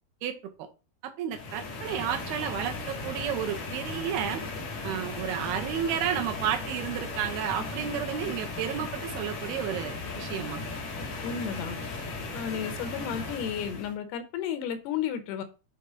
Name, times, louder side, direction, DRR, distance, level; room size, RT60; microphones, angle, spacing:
voice 1, 0.2-0.7 1.0-4.4 4.8-10.6, right 9 dB, 85° right, 5 dB, 2.7 m, -32 dB
sound 1, 1.3-13.9, left 3 dB, 65° left, 1.8 m, -36 dB
voice 2, 11.2-11.8 12.3-15.4, left 8 dB, 85° left, 9 dB, 2.9 m, -33 dB
7.5 x 4.1 x 3.9 m, 0.32 s
omnidirectional pair, 4.5 m